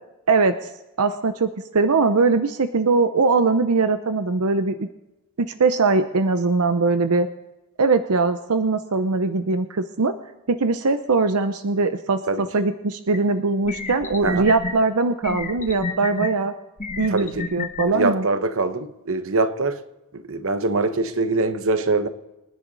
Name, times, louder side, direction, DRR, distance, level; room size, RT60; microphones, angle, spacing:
voice 1, 1.0-4.9 5.4-7.3 7.8-10.1 10.5-16.5 17.0-18.3, right 3 dB, 85° right, 0.8 m, -21 dB
sound 1, 13.1-13.2 13.7-14.7 15.2-16.3 16.8-17.8, left 3 dB, 35° left, 1.3 m, -29 dB
voice 2, 17.1-17.5 17.9-19.8 20.3-22.1, right 3 dB, 65° right, 1.0 m, -23 dB
26.0 x 10.5 x 4.1 m
head